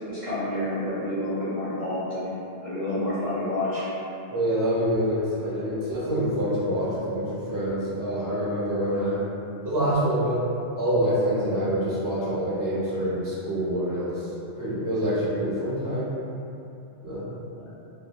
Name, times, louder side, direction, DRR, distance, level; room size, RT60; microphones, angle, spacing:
voice 1, 0.1-2.3 2.6-3.9 17.6-17.7, left 1 dB, 35° left, -14 dB, 0.6 m, -29 dB
voice 2, 4.3-9.2 9.6-10.4 10.8-14.2 14.6-16.1 17.0-17.2, equal, 25° right, -11 dB, 0.5 m, -26 dB
2.1 x 2.0 x 2.8 m, 2.8 s
omnidirectional pair, 1.2 m